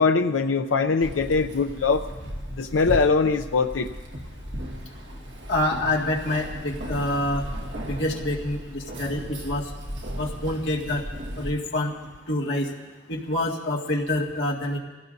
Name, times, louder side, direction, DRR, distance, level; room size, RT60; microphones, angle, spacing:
voice 1, 0.0-2.0 2.6-3.9, left 4 dB, 90° left, 5 dB, 0.5 m, -22 dB
Keys jangling, 1.0-11.5, equal, 70° right, 2.0 m, -36 dB
voice 2, 5.5-7.4 7.8-9.7 10.2-11.0 11.4-11.9 12.3-12.7 13.1-14.8, left 1 dB, 70° left, -2 dB, 2.1 m, -26 dB
25.5 x 16.5 x 2.7 m, 1.4 s
head